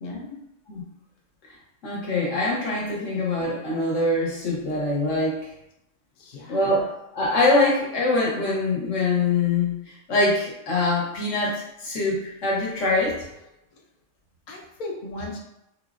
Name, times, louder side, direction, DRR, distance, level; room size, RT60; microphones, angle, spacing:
voice 1, 0.0-0.4 2.9-3.0 6.2-6.7 14.5-15.4, left 2 dB, 50° left, -1 dB, 0.5 m, -36 dB
voice 2, 1.8-5.4 6.5-6.9 7.1-9.8 10.1-13.1, left 2 dB, 70° left, -4 dB, 1.2 m, -23 dB
3.9 x 2.0 x 2.5 m, 0.84 s
omnidirectional pair, 1.3 m